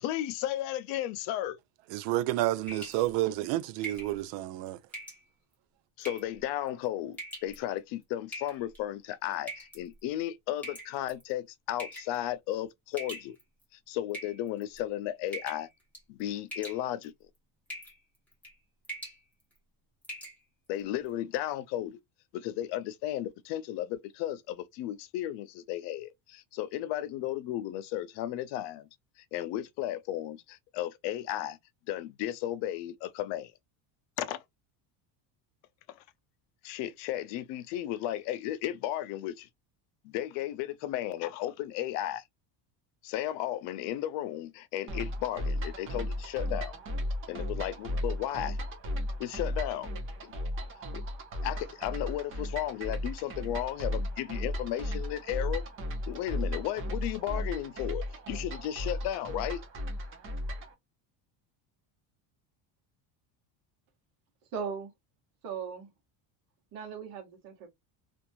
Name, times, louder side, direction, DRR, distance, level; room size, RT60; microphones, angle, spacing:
voice 1, 0.0-1.6 6.0-13.4 13.7-15.7 16.1-17.1 20.7-22.0 22.3-28.9 29.3-31.6 31.9-33.5 34.2-34.4 35.9-36.0 36.6-39.5 40.0-42.2 43.0-46.7 47.3-48.6 49.2-49.9 50.2-50.3 50.9-51.0 51.4-55.6 56.1-59.6, left 13 dB, 60° left, 0.5 m, -34 dB
voice 2, 1.9-4.8, right 15 dB, 65° right, 0.5 m, -30 dB
sound 1, 2.7-3.1 3.8-4.1 4.9-5.2 6.0-6.4 7.1-7.6 8.3-8.8 9.5-9.8 10.6-11.2 11.8-12.2 13.0-13.6 14.1-14.8 15.3-15.7 15.9-16.2 16.5-17.1 17.7-18.0 18.3-18.5 18.8-19.2 19.6-19.7 20.0-20.4, right 1 dB, 5° left, 1.0 m, -42 dB
sound 2, 44.9-60.7, left 1 dB, 25° right, 0.6 m, -35 dB
voice 3, 64.5-64.9 65.4-65.9 66.7-67.7, right 6 dB, 45° right, 1.2 m, -38 dB
2.9 x 2.6 x 2.6 m
cardioid pair, 175°, 48 cm